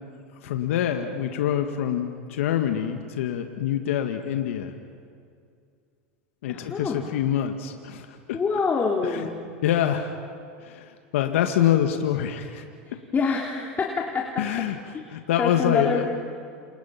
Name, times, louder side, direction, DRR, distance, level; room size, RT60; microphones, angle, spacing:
voice 1, 0.4-4.7 6.4-8.4 9.0-9.3 9.6-10.2 10.6-12.6 14.4-16.1, left 10 dB, 75° left, 5 dB, 1.8 m, -26 dB
voice 2, 6.5-7.1 8.3-9.4 13.1-14.4 14.9-15.0 15.4-16.1, left 5 dB, 25° left, -1 dB, 3.3 m, -26 dB
28.5 x 28.5 x 5.9 m, 2.3 s
hypercardioid pair, 100°, 7 cm